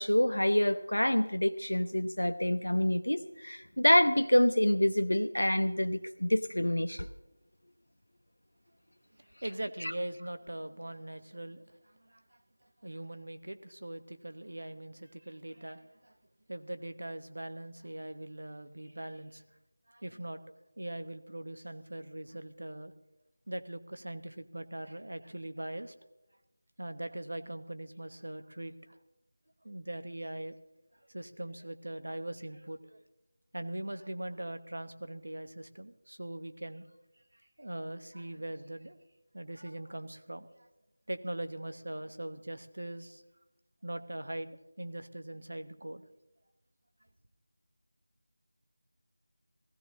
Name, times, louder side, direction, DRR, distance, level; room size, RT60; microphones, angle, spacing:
voice 1, 0.0-7.1 9.8-9.9, left 1 dB, 90° left, 0.7 m, -27 dB
voice 2, 9.2-12.4 12.8-16.2 16.5-19.4 19.9-20.4 20.8-22.9 23.5-25.9 26.8-29.0 29.6-30.6 31.1-33.0 33.5-36.9 37.3-39.0 39.3-40.7 41.1-43.2 43.8-46.0, right 1 dB, 75° right, 1.1 m, -41 dB
17.0 x 14.5 x 3.7 m
figure-of-eight pair, 170°, 0 cm